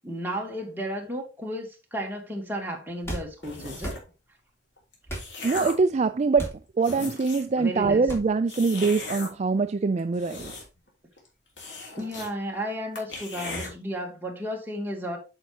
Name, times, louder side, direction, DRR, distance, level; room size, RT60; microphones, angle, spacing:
voice 1, 0.0-4.0 7.6-8.1 12.0-15.2, equal, 10° right, 2.6 m, -33 dB
sound 1, 3.0-3.3 3.8-4.0 5.1-5.3 6.4-6.6 8.1-8.3, right 1 dB, 15° left, 3.2 m, -34 dB
sound 2, 3.4-4.1 4.8-5.9 6.5-6.6 6.8-7.6 8.5-9.3 10.0-10.9 11.2-11.3 11.6-12.3 12.6-12.7 13.0-13.7, left 2 dB, 85° left, 3.2 m, -37 dB
voice 2, 5.4-10.5, right 4 dB, 40° right, 0.4 m, -24 dB
8.7 x 6.7 x 2.9 m
head